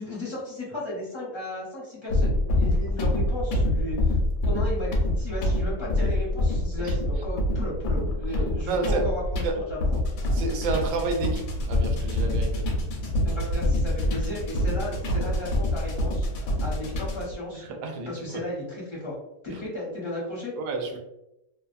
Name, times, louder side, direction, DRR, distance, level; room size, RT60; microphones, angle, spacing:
voice 1, 0.0-4.2 4.4-9.8 10.2-10.3 13.2-17.6 18.1-19.1 19.4-20.6, left 1 dB, 25° left, -6 dB, 0.6 m, -35 dB
sound 1, 2.1-17.4, left 1 dB, 70° left, 1.0 m, -26 dB
voice 2, 8.7-9.0 9.4-9.6 10.3-12.7 17.7-18.4 19.5-19.6 20.6-21.0, right 3 dB, 70° right, 3 dB, 0.9 m, -30 dB
2.6 x 2.4 x 2.4 m, 0.89 s
omnidirectional pair, 1.6 m